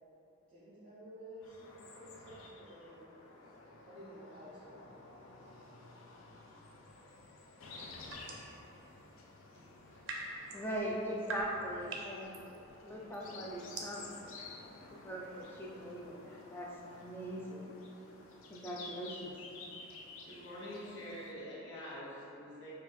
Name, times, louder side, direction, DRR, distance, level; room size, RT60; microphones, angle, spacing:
voice 1, 0.5-3.1 3.9-4.8, equal, 40° right, -11 dB, 0.9 m, -52 dB
sound 1, 1.4-21.3, left 3 dB, 80° left, 0.4 m, -53 dB
sound 2, 7.8-8.6 9.7-17.4, right 2 dB, 65° right, 0.5 m, -46 dB
voice 2, 10.5-12.5 12.8-14.2 14.9-16.7 16.9-17.8 18.5-19.4, equal, 10° left, -3 dB, 0.4 m, -41 dB
voice 3, 20.2-22.7, equal, 60° left, -8 dB, 0.9 m, -45 dB
4.3 x 2.4 x 3.6 m, 2.9 s
head